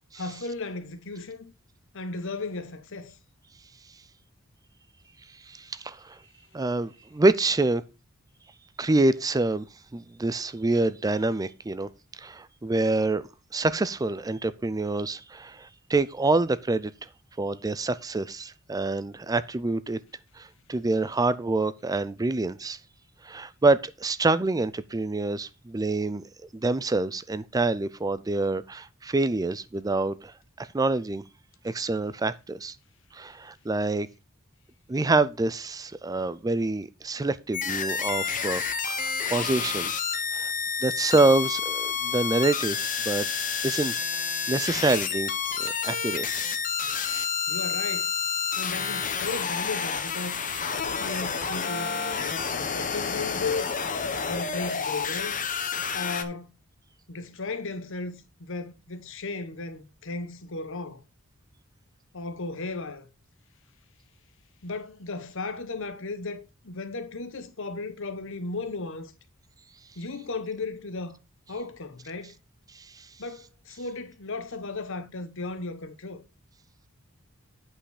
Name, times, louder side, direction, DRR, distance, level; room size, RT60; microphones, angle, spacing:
voice 1, 0.1-1.5 1.9-3.2 47.5-48.1 48.6-50.4 50.8-53.7 54.2-55.4 55.9-56.5 57.1-61.0 62.1-63.1 64.6-69.1 70.0-71.2 71.5-72.3 73.2-76.2, left 3 dB, 65° left, 1.1 m, -35 dB
voice 2, 5.5-6.2 6.5-7.8 8.8-9.7 9.9-16.9 17.4-20.0 20.4-22.8 23.2-26.2 26.5-31.2 31.6-32.7 33.1-34.1 34.9-39.9 40.3-40.5 40.8-42.8 43.1-43.3 43.6-45.3 45.6-46.3 72.8-73.1, right 2 dB, 15° right, 0.4 m, -26 dB
sound 1, 37.5-56.2, left 6 dB, 40° left, 1.0 m, -29 dB
8.6 x 5.6 x 4.9 m
head